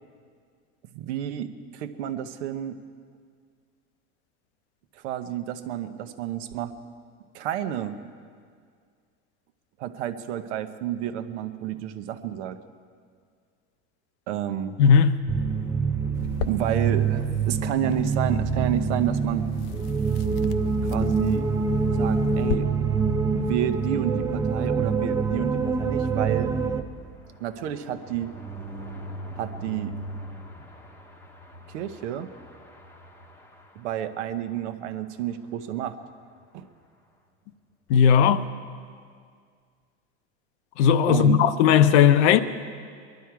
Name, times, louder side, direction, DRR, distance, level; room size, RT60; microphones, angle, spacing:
voice 1, 0.9-2.8 5.0-6.8 7.3-8.0 9.8-12.6 14.3-14.8 16.4-19.5 20.9-21.5 21.9-22.7 23.3-26.5 27.4-28.3 29.4-30.0 31.7-32.3 33.8-36.0 36.5-36.7 41.1-41.4, right 11 dB, 90° right, 0.9 m, -30 dB
voice 2, 14.8-15.1 37.9-38.4 40.8-42.4, left 8 dB, 80° left, 0.8 m, -17 dB
sound 1, 15.3-26.8, right 5 dB, 10° right, 0.4 m, -25 dB
sound 2, 16.1-22.6, left 7 dB, 50° left, 0.6 m, -38 dB
sound 3, 26.4-34.4 34.8-35.0 35.2-35.3 35.6-35.9, right 1 dB, 5° left, 0.8 m, -42 dB
21.5 x 12.0 x 4.7 m
supercardioid pair, 145°, 33 cm